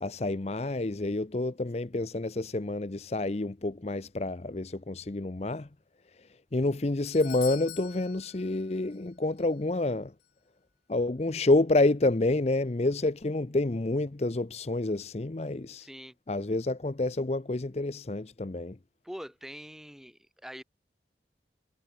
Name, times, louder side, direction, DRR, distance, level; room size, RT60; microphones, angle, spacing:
voice 1, 0.0-5.7 6.5-10.1 10.9-15.9 16.3-18.8, left 2 dB, 35° left, 0.6 m, -28 dB
Doorbell, 6.6-9.1 9.4-9.5 10.2-10.3, left 13 dB, 70° left, 3.4 m, -45 dB
voice 2, 15.8-16.1 19.0-20.6, equal, ahead, 5.1 m, -44 dB
head